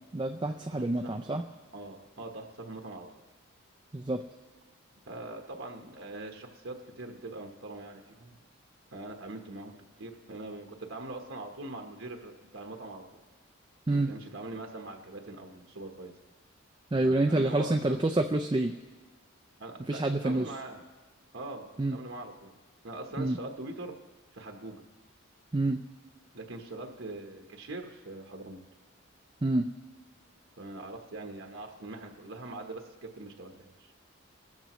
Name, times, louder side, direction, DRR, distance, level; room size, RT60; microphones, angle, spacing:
voice 1, 0.1-1.4 3.9-4.2 13.9-14.1 16.9-18.7 19.9-20.5 21.8-22.0 23.2-23.4 25.5-25.8 29.4-29.7, right 2 dB, 20° right, 5 dB, 0.4 m, -27 dB
voice 2, 0.7-1.4 1.7-3.2 5.1-8.4 8.9-13.2 13.9-16.1 16.9-18.0 19.6-20.8 21.3-22.5 22.8-24.0 24.3-24.8 26.3-28.6 30.6-33.9, right 2 dB, 65° right, 2 dB, 1.1 m, -42 dB
27.0 x 13.5 x 3.1 m, 1.3 s
head